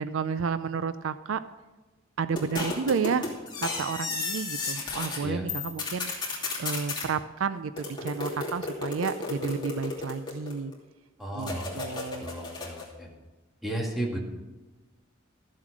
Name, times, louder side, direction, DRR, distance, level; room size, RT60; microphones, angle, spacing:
voice 1, 0.0-1.4 2.2-3.3 3.6-10.7 11.3-12.3, right 5 dB, 70° right, 14 dB, 0.5 m, -31 dB
sound 1, 2.4-5.2 5.5-7.1 7.8-10.7 11.4-12.9, left 3 dB, 25° left, 2.7 m, -34 dB
voice 2, 11.2-13.1 13.6-14.2, right 1 dB, ahead, -1 dB, 2.2 m, -34 dB
14.0 x 7.5 x 6.1 m, 1.2 s
head